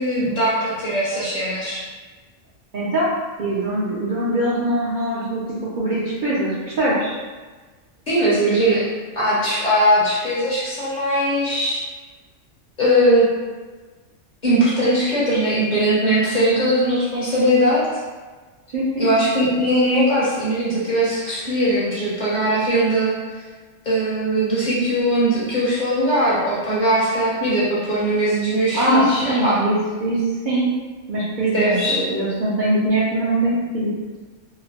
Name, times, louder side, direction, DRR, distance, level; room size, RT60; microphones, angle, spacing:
voice 1, 0.0-1.8 8.1-8.8 9.1-11.8 12.8-13.3 14.4-17.9 19.0-23.2 23.8-29.6 31.5-32.0, right 1 dB, 45° left, -8 dB, 0.7 m, -20 dB
voice 2, 2.7-3.1 3.4-5.4 5.7-7.2 8.4-8.6 18.7-19.1 28.7-30.2 30.4-30.8 31.1-33.9, right 1 dB, 60° right, -9 dB, 0.5 m, -22 dB
2.9 x 2.0 x 2.8 m, 1.3 s
omnidirectional pair, 1.3 m